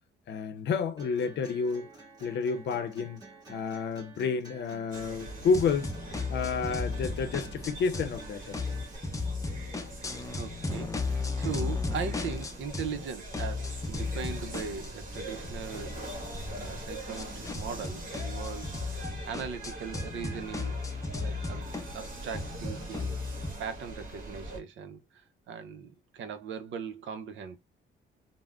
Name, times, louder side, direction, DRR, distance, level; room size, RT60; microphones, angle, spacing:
voice 1, 0.3-1.9 2.2-3.2 3.5-5.9 6.3-8.6, left 5 dB, 65° left, 0.6 m, -30 dB
sound 1, 1.0-9.0, right 4 dB, 20° right, 1.7 m, -51 dB
sound 2, 4.9-24.6, right 1 dB, 45° right, 1.3 m, -43 dB
sound 3, 5.5-8.2 8.5-13.0 13.3-23.5, left 3 dB, 15° left, 0.5 m, -35 dB
voice 2, 10.3-16.2 16.5-18.8 19.2-20.8 21.2-21.7 21.9-23.2 23.6-25.0 25.5-27.6, right 6 dB, 75° right, 0.6 m, -39 dB
3.5 x 2.1 x 2.3 m
cardioid pair, 90°, 20 cm